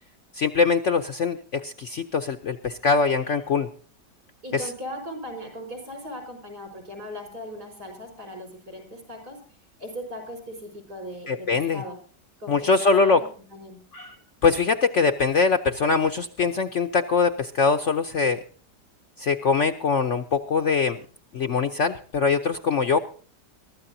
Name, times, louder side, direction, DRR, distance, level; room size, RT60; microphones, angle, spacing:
voice 1, 0.3-3.7 4.5-4.7 11.3-11.8 12.5-13.2 13.9-14.2 14.4-18.4 19.2-21.0 21.3-23.0, left 5 dB, 55° left, 7 dB, 0.8 m, -22 dB
voice 2, 4.4-9.4 9.8-12.0 12.4-13.8, equal, 60° right, 5 dB, 5.4 m, -38 dB
23.0 x 13.0 x 2.7 m, 0.41 s
omnidirectional pair, 1.9 m